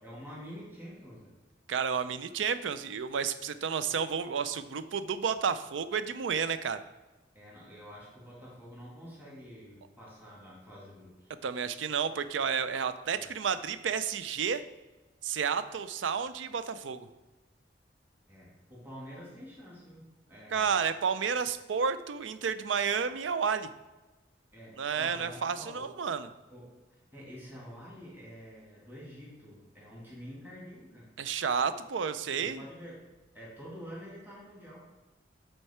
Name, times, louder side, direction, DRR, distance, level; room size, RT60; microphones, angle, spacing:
voice 1, 0.0-1.3 7.3-11.3 13.2-13.3 18.3-20.7 24.5-25.9 26.5-31.1 32.3-33.1 33.3-34.9, equal, 10° right, -6 dB, 2.2 m, -48 dB
voice 2, 1.7-6.8 11.4-14.6 15.2-17.1 20.5-23.7 24.8-26.3 31.2-32.6, right 6 dB, 75° right, 12 dB, 0.4 m, -31 dB
8.0 x 4.5 x 4.3 m, 1.1 s
head